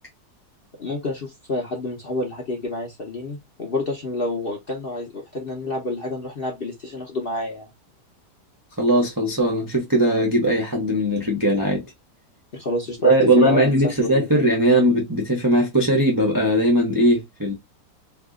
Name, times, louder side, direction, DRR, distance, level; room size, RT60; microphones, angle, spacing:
voice 1, 0.8-7.7 12.5-14.3, left 2 dB, 50° left, 0.7 m, -29 dB
voice 2, 8.8-11.8 13.0-17.5, right 1 dB, 25° right, 0.4 m, -19 dB
2.8 x 2.5 x 3.7 m
omnidirectional pair, 1.9 m